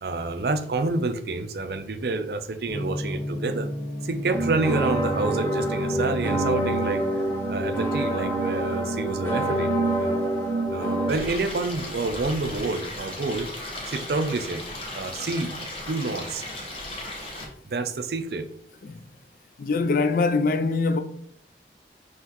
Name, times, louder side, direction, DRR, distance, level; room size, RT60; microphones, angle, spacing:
voice 1, 0.0-3.7 4.0-7.2 7.5-9.7 10.0-10.3 10.7-13.5 13.9-14.6 14.9-15.5 15.9-16.4 17.6-18.5, right 3 dB, 60° right, 0.5 m, -28 dB
Gong, 2.7-10.7, left 1 dB, 80° left, 1.3 m, -35 dB
sound 1, 4.3-11.1, right 1 dB, 15° left, 1.0 m, -26 dB
Stream, 11.1-17.4, left 1 dB, 30° left, 1.0 m, -36 dB
voice 2, 19.6-21.0, left 3 dB, 50° left, 0.4 m, -23 dB
5.7 x 3.2 x 2.9 m
head